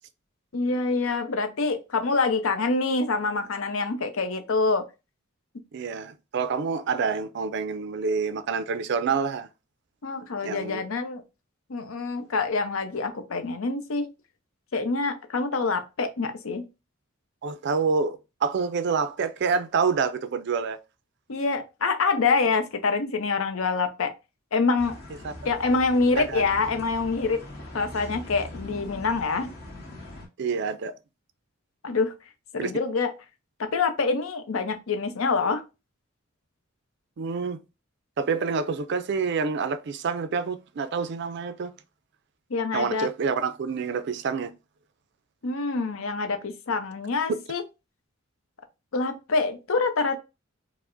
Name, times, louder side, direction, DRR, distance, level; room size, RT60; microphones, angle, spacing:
voice 1, 0.5-4.8 10.0-11.2 11.7-14.1 14.7-16.6 21.3-24.1 24.5-24.9 25.4-27.4 27.7-29.5 31.8-32.1 32.5-33.1 33.6-35.6 42.5-43.1 45.4-47.6 48.9-50.2, left 4 dB, 80° left, 0.6 m, -26 dB
voice 2, 5.7-9.5 10.4-10.8 17.4-20.8 25.2-25.3 26.2-26.4 30.4-31.0 32.6-32.7 37.2-37.6 38.2-41.7 42.7-44.5 47.3-47.4, right 5 dB, 55° right, 0.4 m, -27 dB
sound 1, 24.8-30.3, left 1 dB, 50° left, 1.7 m, -41 dB
4.6 x 2.1 x 2.5 m
head